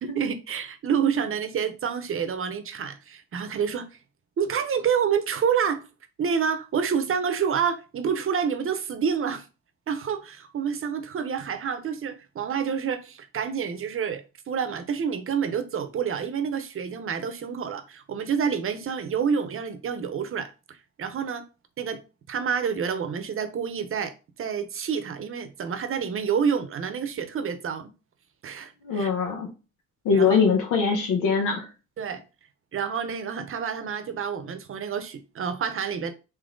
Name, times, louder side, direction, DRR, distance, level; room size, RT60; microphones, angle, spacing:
voice 1, 0.0-3.9 4.4-5.8 6.2-9.5 9.9-21.4 21.8-24.1 24.4-27.9 28.4-29.1 30.1-30.4 32.0-32.2 32.7-36.1, right 7 dB, 45° right, 0.7 m, -28 dB
voice 2, 28.8-29.5 30.0-31.7, left 5 dB, 90° left, 1.0 m, -22 dB
3.8 x 2.8 x 3.8 m
cardioid pair, 90°, 30 cm